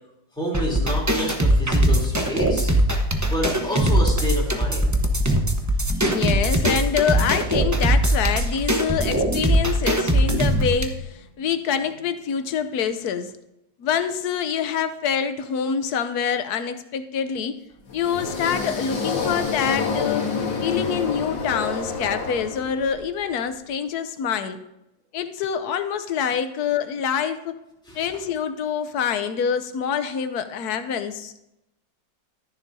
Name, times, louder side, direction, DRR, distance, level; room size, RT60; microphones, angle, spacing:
voice 1, 0.4-2.8 3.3-5.0 27.9-28.0, equal, ahead, -4 dB, 3.1 m, -29 dB
sound 1, 0.5-10.8, right 1 dB, 20° right, 0.5 m, -21 dB
voice 2, 6.0-13.3 13.8-17.6 17.9-20.3 20.6-24.6 25.1-27.5 27.9-31.3, left 7 dB, 65° left, 10 dB, 1.1 m, -26 dB
sound 2, 17.9-23.0, left 4 dB, 80° left, 2.2 m, -28 dB
12.5 x 10.5 x 2.7 m, 0.86 s
omnidirectional pair, 2.0 m